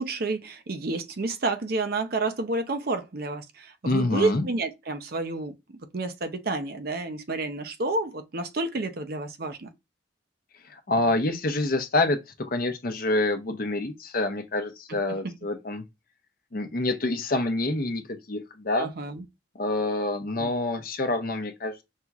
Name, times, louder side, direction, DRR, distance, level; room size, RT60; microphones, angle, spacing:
voice 1, 0.0-9.7 10.9-11.1 14.9-15.0 15.2-15.3 17.7-17.8 18.8-19.2 20.4-20.5, right 3 dB, 50° right, 0.6 m, -30 dB
voice 2, 3.9-4.4 10.7-15.8 16.5-18.0 18.3-18.9 19.5-21.8, left 2 dB, 50° left, 0.7 m, -27 dB
5.5 x 2.9 x 2.4 m
head